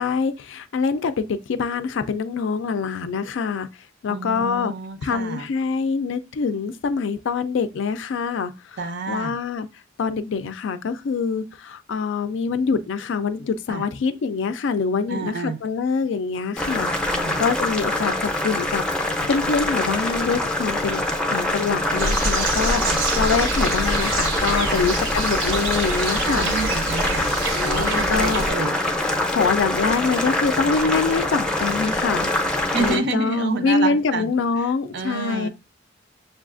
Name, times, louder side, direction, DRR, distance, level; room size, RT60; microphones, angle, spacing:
voice 1, 0.0-3.7 4.0-4.7 5.0-8.5 9.1-9.7 10.0-21.0 21.3-22.8 23.2-26.5 27.5-28.5 29.3-32.3 32.8-35.5, left 5 dB, 70° left, 0.4 m, -25 dB
voice 2, 4.1-5.5 8.8-9.4 13.7-13.9 15.1-15.6 17.1-17.4 22.8-23.0 24.7-24.8 26.2-27.3 27.6-28.7 30.8-30.9 32.7-34.3 34.9-35.5, right 4 dB, 60° right, 0.5 m, -29 dB
Boiling, 16.6-33.0, left 1 dB, 5° left, 0.5 m, -24 dB
sound 1, 22.0-28.5, right 2 dB, 80° right, 0.8 m, -27 dB
6.5 x 2.4 x 2.4 m
head